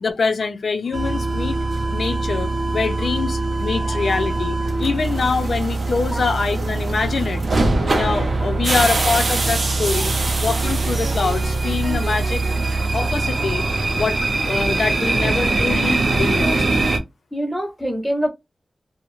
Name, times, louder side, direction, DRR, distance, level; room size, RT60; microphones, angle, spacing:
voice 1, 0.0-1.6 1.9-7.4 7.8-10.1 10.4-12.4 12.9-13.6 13.9-14.2 14.4-16.6, left 4 dB, 75° left, 0.4 m, -24 dB
sound 1, 0.9-17.0, right 2 dB, 60° right, 0.5 m, -22 dB
sound 2, 10.6-12.7, right 2 dB, 90° right, 0.8 m, -33 dB
voice 2, 17.3-18.3, equal, 5° right, 0.7 m, -25 dB
2.4 x 2.0 x 3.0 m
wide cardioid pair, 115°, 0 cm